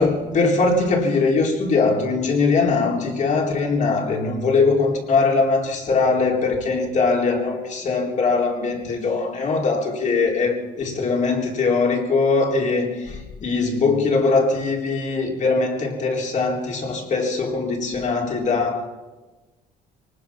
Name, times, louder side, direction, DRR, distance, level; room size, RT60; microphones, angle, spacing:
voice 1, 0.0-18.9, left 4 dB, 45° left, 3.9 m, -21 dB
23.5 x 19.0 x 5.9 m
cardioid pair, 110°, 17 cm